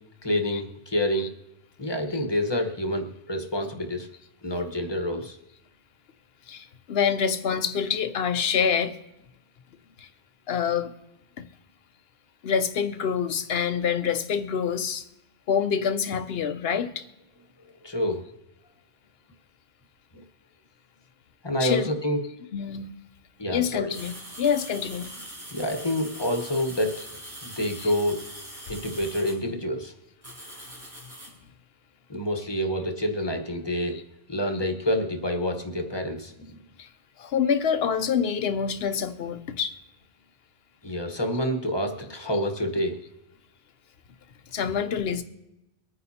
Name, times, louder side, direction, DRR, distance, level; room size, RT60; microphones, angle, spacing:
voice 1, 0.2-1.3 1.8-4.1 4.4-5.4 17.8-18.2 20.1-20.2 21.4-22.2 23.4-23.9 25.5-27.0 27.4-28.2 28.7-29.9 32.1-34.0 34.3-36.6 40.8-43.0, left 1 dB, 25° left, 1.2 m, -28 dB
voice 2, 6.5-9.0 10.0-10.1 10.5-10.9 12.4-15.0 15.5-17.0 21.6-21.9 22.5-22.9 23.5-25.1 27.8-27.9 33.9-34.0 36.8-36.9 37.2-39.8 42.3-42.5 44.5-45.2, left 7 dB, 70° left, 1.0 m, -26 dB
sound 1, 23.9-29.4 30.2-31.3, right 1 dB, 85° right, 4.9 m, -42 dB
24.0 x 9.5 x 2.8 m
omnidirectional pair, 1.1 m